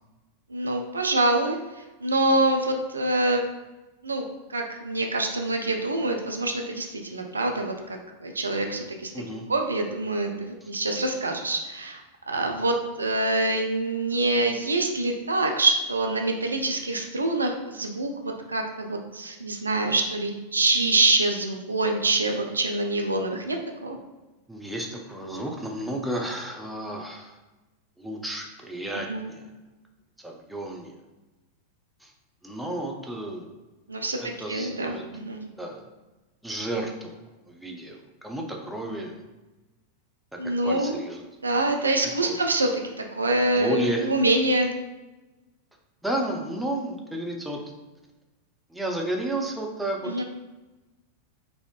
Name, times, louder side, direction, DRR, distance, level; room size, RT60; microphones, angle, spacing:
voice 1, 0.5-1.6 2.0-3.4 4.0-4.2 4.5-9.1 9.5-12.0 12.3-24.0 29.1-29.2 33.9-35.4 40.4-40.9 41.4-42.7 43.0-44.7 50.1-50.2, right 2 dB, 75° right, 3 dB, 0.3 m, -25 dB
voice 2, 9.1-9.4 10.6-10.7 24.5-27.4 28.0-29.5 30.2-30.9 32.0-32.1 32.4-33.5 34.2-35.0 35.6-35.9 36.4-37.2 37.5-39.2 40.6-41.2 42.2-42.3 43.5-44.1 46.0-47.6 48.7-50.2, right 1 dB, 5° right, 0 dB, 0.5 m, -32 dB
3.4 x 2.5 x 2.4 m, 1.1 s
figure-of-eight pair, 90°, 0 cm